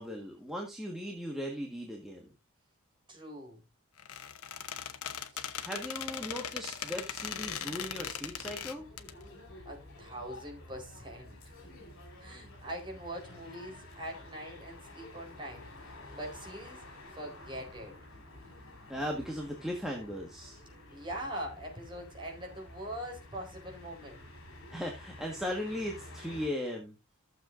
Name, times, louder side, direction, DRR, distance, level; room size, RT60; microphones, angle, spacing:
voice 1, 0.0-2.3 5.6-8.9 18.9-20.6 24.7-26.9, equal, ahead, 1.6 m, -38 dB
voice 2, 3.1-3.6 5.3-5.5 9.6-11.4 12.2-16.8 17.1-18.0 20.9-24.3, right 1 dB, 20° right, 4.4 m, -43 dB
Squeak, 4.0-9.1, left 8 dB, 85° left, 1.0 m, -39 dB
sound 1, 8.2-26.5, left 1 dB, 60° left, 3.8 m, -51 dB
15.0 x 7.4 x 2.6 m
head